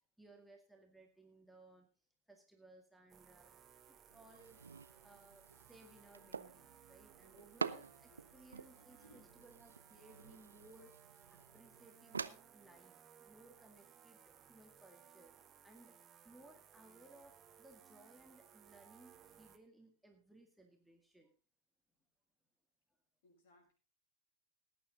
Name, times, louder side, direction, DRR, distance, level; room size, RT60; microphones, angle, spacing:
voice 1, 0.0-1.9 2.3-3.6 3.9-4.6 5.0-11.0 11.3-15.4 15.6-16.0 16.2-21.3, right 2 dB, ahead, 1 dB, 2.1 m, -62 dB
sound 1, 3.1-19.6, right 8 dB, 20° right, 1.6 m, -63 dB
sound 2, 4.1-12.3, right 5 dB, 75° right, 0.6 m, -48 dB
voice 2, 8.1-8.5 8.8-9.4 23.2-23.7, equal, 55° left, 2 dB, 6.5 m, -67 dB
17.5 x 9.4 x 4.0 m, 0.35 s
figure-of-eight pair, 90°, 0 cm